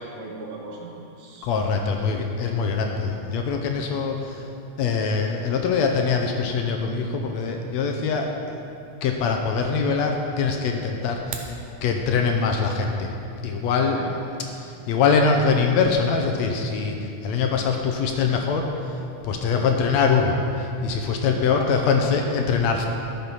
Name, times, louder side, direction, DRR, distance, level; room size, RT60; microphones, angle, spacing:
voice 1, 0.0-1.5 13.9-14.1 21.5-21.8, right 2 dB, 65° right, -2 dB, 2.5 m, -37 dB
voice 2, 1.4-4.5 4.8-8.6 9.0-11.5 11.8-13.1 13.4-14.0 14.6-17.0 17.2-18.7 19.2-22.9, left 5 dB, 75° left, 3 dB, 1.8 m, -23 dB
sound 1, 11.1-11.6, right 7 dB, 90° right, 2.3 m, -36 dB
13.5 x 6.0 x 5.4 m, 2.7 s
omnidirectional pair, 3.4 m